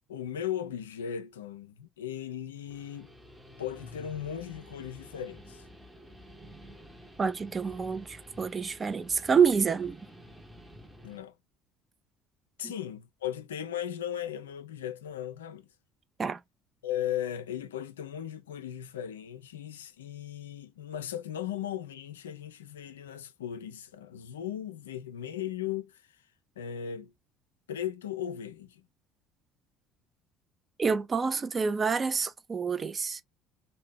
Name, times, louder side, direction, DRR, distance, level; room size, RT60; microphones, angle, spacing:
voice 1, 0.1-3.1 3.6-5.6 11.0-11.3 12.6-15.7 16.8-26.0 26.6-27.1 27.7-28.8, left 10 dB, 75° left, 0.3 m, -37 dB
Guitar, 2.5-11.2, equal, 10° right, 0.8 m, -51 dB
voice 2, 7.2-10.0 16.2-16.4 30.8-33.2, right 6 dB, 30° right, 0.4 m, -27 dB
2.7 x 2.1 x 3.4 m
figure-of-eight pair, 55°, 0 cm